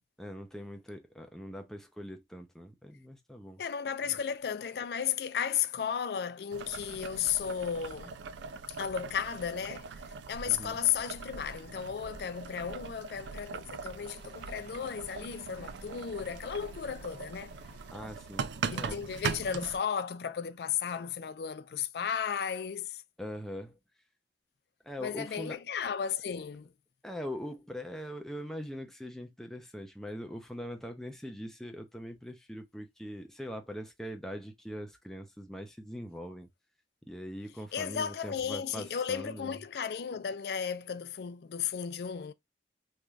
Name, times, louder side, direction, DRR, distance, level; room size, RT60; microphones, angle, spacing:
voice 1, 0.2-3.6 4.1-4.2 10.5-10.8 17.9-18.9 23.2-23.8 24.8-25.6 27.0-36.5 37.0-39.6, equal, ahead, 0.5 m, -42 dB
voice 2, 3.6-8.2 8.7-9.9 10.3-17.5 18.7-23.0 25.0-26.7 37.7-42.3, left 8 dB, 65° left, 0.4 m, -34 dB
Boiling, 6.5-19.8, right 5 dB, 90° right, 0.4 m, -41 dB
sound 1, 14.0-18.0, right 1 dB, 60° right, 1.1 m, -57 dB
3.2 x 2.6 x 2.2 m
head